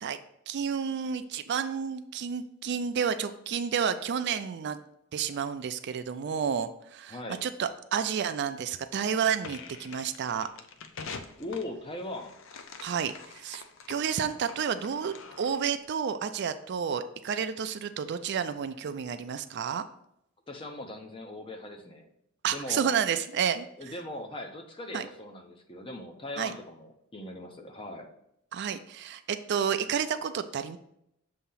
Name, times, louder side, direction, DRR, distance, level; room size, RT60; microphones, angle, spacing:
voice 1, 0.5-4.8 5.1-10.5 12.8-19.8 22.4-23.7 24.9-25.1 26.4-26.5 28.5-30.8, right 7 dB, 55° right, 10 dB, 0.4 m, -30 dB
voice 2, 7.1-7.4 11.4-12.3 20.5-22.1 22.5-22.9 23.8-28.1, left 1 dB, 25° left, 4 dB, 0.7 m, -39 dB
sound 1, 9.4-15.8, left 5 dB, 65° left, 0.5 m, -46 dB
6.9 x 2.8 x 5.6 m, 0.77 s
head